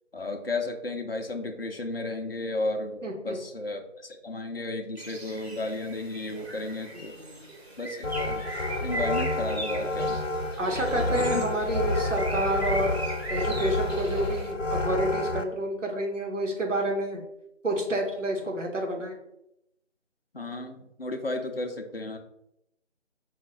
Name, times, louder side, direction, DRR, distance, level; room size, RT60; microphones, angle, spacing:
voice 1, 0.1-7.2 7.8-8.4 8.8-10.2 10.9-11.4 20.3-22.2, left 2 dB, 50° left, 4 dB, 0.6 m, -33 dB
voice 2, 3.0-3.4 7.2-7.5 10.6-13.0 13.3-17.2 17.6-19.2, right 1 dB, 80° right, 1 dB, 1.3 m, -29 dB
Bird, 5.0-14.5, right 2 dB, 55° right, 1.2 m, -39 dB
sound 1, 8.0-15.4, left 2 dB, 80° left, 0.8 m, -29 dB
5.0 x 2.5 x 3.8 m, 0.82 s
figure-of-eight pair, 180°, 37 cm